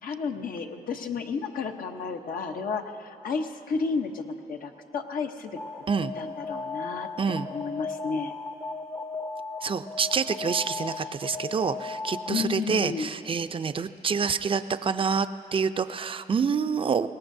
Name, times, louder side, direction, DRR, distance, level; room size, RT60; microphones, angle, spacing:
voice 1, 0.0-5.6 6.1-7.1 7.5-8.4 12.3-13.1, left 5 dB, 70° left, 5 dB, 1.0 m, -32 dB
Alarm, 5.6-12.6, left 3 dB, 20° left, 0.7 m, -36 dB
voice 2, 9.6-15.3 15.5-17.1, right 5 dB, 35° right, 11 dB, 0.5 m, -27 dB
22.5 x 18.5 x 2.7 m, 2.8 s
cardioid pair, 80°, 15 cm